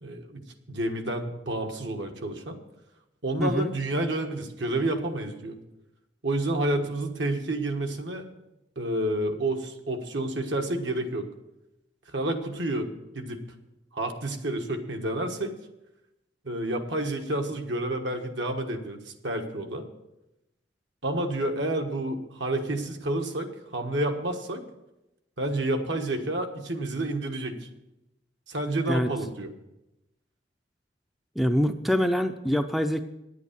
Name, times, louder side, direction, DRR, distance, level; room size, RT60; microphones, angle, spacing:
voice 1, 0.0-0.4 0.7-2.6 3.2-5.6 6.2-8.3 8.8-11.3 12.1-12.9 13.1-13.4 13.9-15.5 16.4-19.9 21.0-24.6 25.4-27.5 28.5-29.5, right 1 dB, 70° right, 4 dB, 1.4 m, -29 dB
voice 2, 3.4-3.7 28.9-29.1 31.4-33.0, equal, ahead, 7 dB, 0.4 m, -25 dB
10.0 x 8.4 x 6.7 m, 0.92 s
head